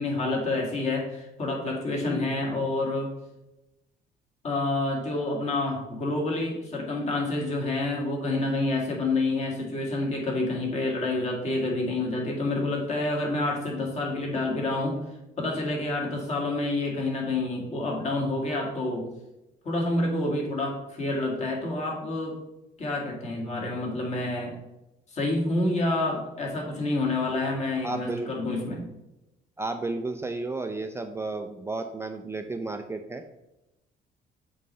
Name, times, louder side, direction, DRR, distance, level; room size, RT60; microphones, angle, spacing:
voice 1, 0.0-3.1 4.4-15.0 15.4-19.1 19.6-22.4 22.8-24.5 25.1-28.8, left 2 dB, 40° left, -1 dB, 2.1 m, -28 dB
voice 2, 27.8-28.3 29.6-33.3, right 3 dB, 15° right, 6 dB, 0.4 m, -32 dB
7.6 x 3.2 x 5.3 m, 0.94 s
cardioid pair, 110°, 17 cm